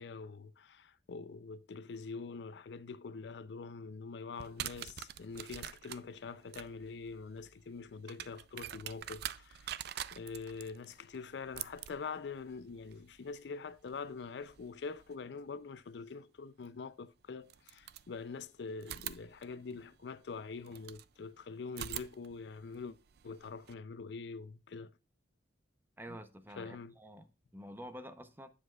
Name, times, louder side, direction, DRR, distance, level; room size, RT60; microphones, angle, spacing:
voice 1, 0.0-9.8 10.1-23.0 23.2-24.9 26.1-26.2 26.6-27.0, left 4 dB, 65° left, 0.4 m, -44 dB
sound 1, 4.4-15.2 16.6-16.7 17.4-18.4 18.8-21.1 21.7-23.7, right 11 dB, 60° right, 0.4 m, -46 dB
voice 2, 26.0-28.5, equal, 10° right, 0.6 m, -49 dB
7.9 x 7.2 x 2.3 m
head